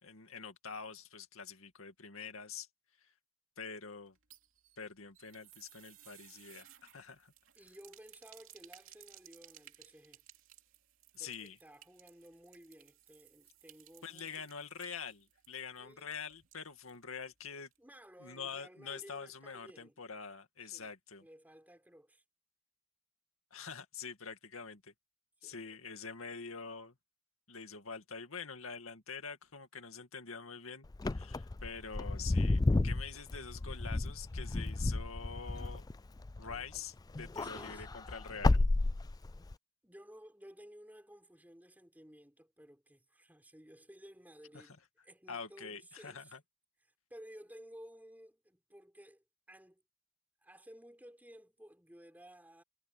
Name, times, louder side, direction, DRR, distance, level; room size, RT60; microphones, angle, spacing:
voice 1, 0.0-2.7 3.0-3.1 3.6-4.2 4.8-7.3 11.1-11.6 14.0-17.7 18.2-21.2 23.5-24.9 25.4-26.9 27.5-35.8 36.4-38.6 44.5-44.8 45.3-46.4, left 5 dB, 80° left, 2.2 m, -46 dB
sound 1, 4.1-17.0 17.3-17.4 17.7-17.8, right 12 dB, 70° right, 2.8 m, -60 dB
voice 2, 7.5-10.2 11.2-14.5 15.8-16.2 17.8-20.0 20.6-20.9 21.2-22.2 25.4-25.8 36.4-36.8 37.4-37.9 39.8-44.8 45.0-46.4 47.1-49.8 50.4-52.6, equal, 10° right, 4.7 m, -56 dB
Wind / Car, 30.9-36.8 37.1-39.5, left 2 dB, 20° left, 0.3 m, -32 dB
head